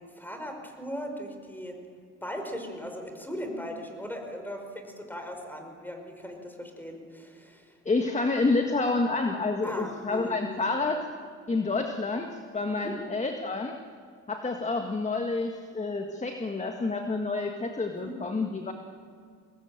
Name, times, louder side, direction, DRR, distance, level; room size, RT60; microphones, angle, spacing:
voice 1, 0.1-1.8 2.2-7.8 9.6-10.6 12.7-13.0 17.9-18.1, equal, 5° left, 4 dB, 5.2 m, -38 dB
voice 2, 7.9-11.1 11.5-13.8 14.3-18.7, left 3 dB, 25° left, 4 dB, 1.8 m, -29 dB
23.5 x 19.0 x 9.1 m, 2.1 s
cardioid pair, 90°, 30 cm